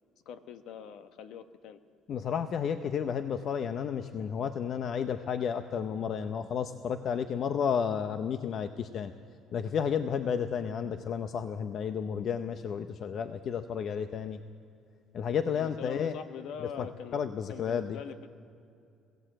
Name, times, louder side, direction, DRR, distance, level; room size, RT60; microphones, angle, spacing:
voice 1, 0.2-1.8 15.5-17.2 17.5-18.3, left 8 dB, 70° left, 9 dB, 1.1 m, -43 dB
voice 2, 2.1-9.1 9.5-14.4 15.1-16.1 16.8-16.9 17.1-18.0, left 7 dB, 55° left, 9 dB, 0.8 m, -32 dB
21.5 x 16.0 x 7.8 m, 2.5 s
supercardioid pair, 95°, 0 cm